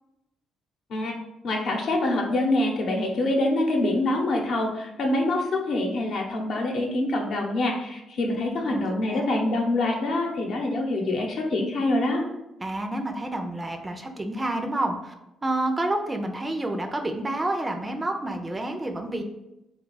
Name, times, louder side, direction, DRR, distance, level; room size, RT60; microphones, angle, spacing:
voice 1, 1.4-12.2, left 2 dB, 65° left, 1 dB, 0.8 m, -25 dB
voice 2, 8.7-9.3 12.6-15.1 15.4-19.2, right 1 dB, 20° right, 4 dB, 0.5 m, -29 dB
3.4 x 2.3 x 3.9 m, 0.91 s
cardioid pair, 90°, 0 cm